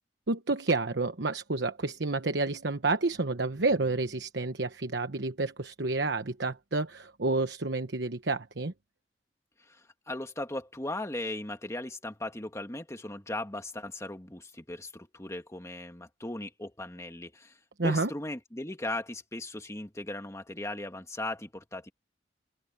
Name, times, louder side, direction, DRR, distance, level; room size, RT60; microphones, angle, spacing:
voice 1, 0.3-8.7 17.8-18.1, right 3 dB, 70° right, 1.1 m, -29 dB
voice 2, 9.6-17.6 17.8-21.9, left 1 dB, 15° left, 1.9 m, -38 dB
head